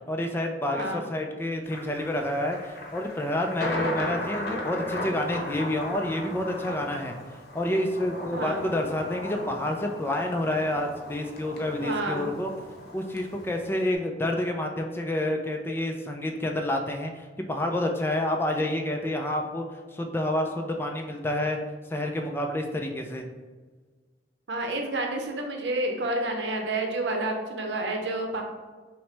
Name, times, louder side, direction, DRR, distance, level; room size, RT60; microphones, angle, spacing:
voice 1, 0.1-7.1 7.5-12.5 12.9-19.7 19.9-21.6 21.9-23.2, left 1 dB, 15° left, 3 dB, 0.3 m, -29 dB
voice 2, 0.7-1.1 3.6-4.0 8.3-8.6 11.8-12.3 24.5-28.4, right 2 dB, 80° right, 3 dB, 0.7 m, -30 dB
Thunder, 1.7-14.0, left 1 dB, 60° left, 0.8 m, -37 dB
5.6 x 2.1 x 3.3 m, 1.4 s
head